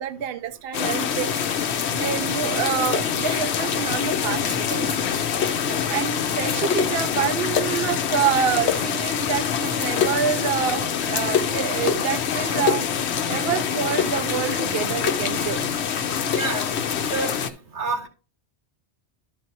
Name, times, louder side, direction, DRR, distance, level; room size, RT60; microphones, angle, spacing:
voice 1, 0.0-5.1 5.9-12.9 13.3-15.6, right 8 dB, 65° right, 9 dB, 0.7 m, -27 dB
sound 1, 0.7-17.5, left 8 dB, 75° left, 1.0 m, -25 dB
voice 2, 16.3-16.7 17.1-17.4 17.7-18.1, right 3 dB, 85° right, 4 dB, 1.9 m, -28 dB
12.0 x 5.3 x 2.9 m, 0.35 s
omnidirectional pair, 1.1 m